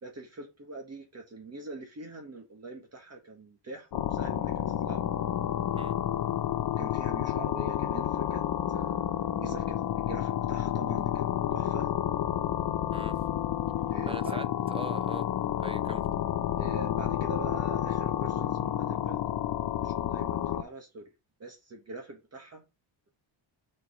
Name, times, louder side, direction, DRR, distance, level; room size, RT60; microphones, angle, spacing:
voice 1, 0.0-5.0 6.8-8.4 8.7-11.9 13.9-14.4 16.6-19.3 19.8-21.0 21.4-22.6, right 2 dB, 30° right, 1.6 m, -43 dB
sound 1, 3.9-20.6, left 11 dB, 50° left, 0.7 m, -30 dB
voice 2, 14.1-15.3 15.6-16.0, right 3 dB, 15° right, 0.3 m, -41 dB
4.6 x 4.4 x 5.7 m
cardioid pair, 150°, 49 cm